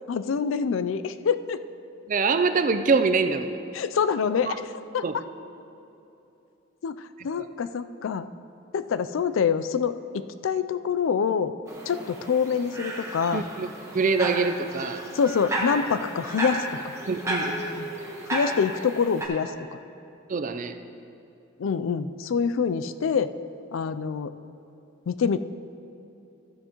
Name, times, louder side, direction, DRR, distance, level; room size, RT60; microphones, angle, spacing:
voice 1, 0.1-1.6 3.7-4.5 4.9-5.0 6.8-6.9 7.2-8.3 8.7-11.5 11.9-13.4 15.1-16.7 18.3-19.5 21.6-23.3 23.7-24.3 25.1-25.4, left 6 dB, 80° left, 12 dB, 0.4 m, -25 dB
voice 2, 2.1-3.6 4.4-4.6 5.0-5.2 7.2-7.5 13.3-15.0 17.1-17.9 20.3-20.8, right 4 dB, 40° right, 9 dB, 0.4 m, -25 dB
sound 1, 11.7-19.3, right 1 dB, 15° right, 1.1 m, -33 dB
13.5 x 9.9 x 3.0 m, 2.9 s
head